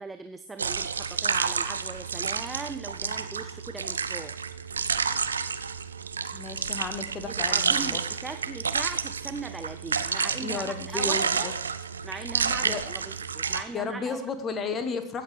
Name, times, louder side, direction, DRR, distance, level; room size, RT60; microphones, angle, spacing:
voice 1, 0.0-4.4 7.2-11.5 12.0-14.3, right 3 dB, 10° right, 8 dB, 0.5 m, -39 dB
sound 1, 0.6-13.6, right 6 dB, 70° right, 0.5 m, -30 dB
voice 2, 6.3-8.0 10.4-11.5 12.6-12.9 13.7-15.2, left 4 dB, 25° left, 9 dB, 1.3 m, -33 dB
15.5 x 8.3 x 3.4 m, 0.77 s
figure-of-eight pair, 90°, 0 cm